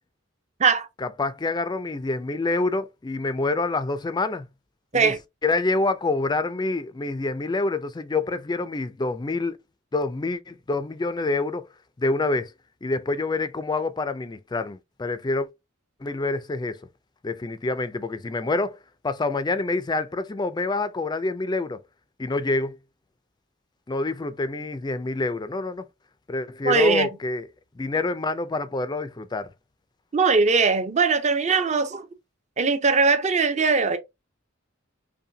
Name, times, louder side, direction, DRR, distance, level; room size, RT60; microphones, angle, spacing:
voice 1, 1.0-4.5 4.9-5.1 5.4-9.6 9.9-11.7 12.0-12.5 12.8-15.5 16.0-16.8 17.2-21.8 22.2-22.8 23.9-25.9 26.3-27.5 27.8-29.5, left 3 dB, 20° left, 0.4 m, -27 dB
voice 2, 26.6-27.1 30.1-32.1 32.6-34.0, right 4 dB, 35° right, 0.6 m, -20 dB
5.5 x 2.2 x 2.7 m
head